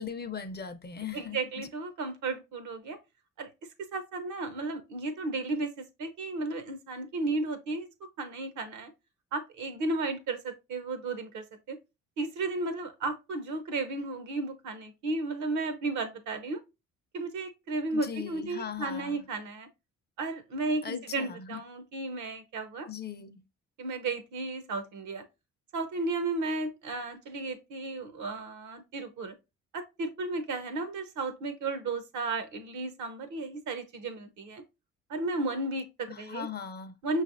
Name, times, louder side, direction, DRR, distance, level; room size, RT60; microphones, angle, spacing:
voice 1, 0.0-1.7 17.9-19.3 20.8-21.6 22.9-23.4 36.1-37.0, left 7 dB, 35° left, 0.5 m, -39 dB
voice 2, 1.1-3.0 3.4-3.5 3.9-7.9 8.2-8.9 9.3-11.8 12.2-16.6 17.1-19.7 20.2-22.9 23.8-25.2 25.7-29.4 29.7-34.6 35.1-36.5 37.0-37.2, right 2 dB, 75° right, 0.8 m, -34 dB
5.3 x 3.2 x 2.5 m
cardioid pair, 90°, 30 cm